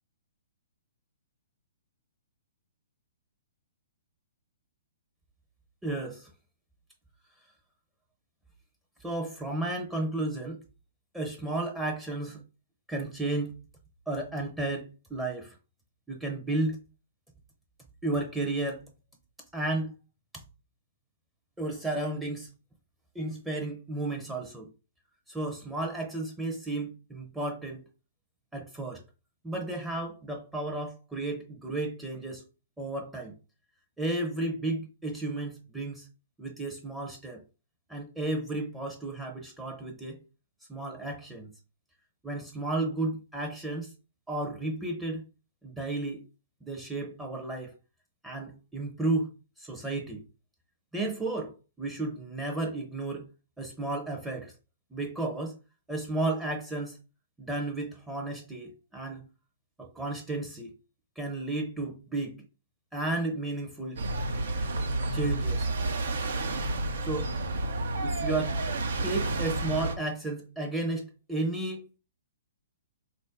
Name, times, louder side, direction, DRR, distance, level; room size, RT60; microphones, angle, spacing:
voice 1, 5.8-6.3 9.0-10.6 11.1-12.4 12.9-13.6 14.1-15.6 16.1-16.8 18.0-18.9 19.5-19.9 20.3-20.4 21.6-22.5 23.1-24.7 25.3-27.8 28.5-29.0 29.4-32.5 32.8-33.3 34.0-36.1 36.4-37.4 37.9-40.2 40.7-41.5 42.2-43.9 44.3-45.2 45.6-46.2 46.7-47.7 48.2-49.3 49.6-50.2 50.9-53.3 53.6-54.5 54.9-55.5 55.9-57.0 57.4-59.3 59.8-60.7 61.2-62.4 62.9-64.1 65.1-65.7 67.0-67.3 68.0-68.6 69.0-72.0, right 2 dB, 5° right, 0.7 m, -33 dB
sound 1, 64.0-69.9, right 2 dB, 65° right, 0.8 m, -30 dB
3.8 x 2.6 x 3.5 m
hypercardioid pair, 125°, 0 cm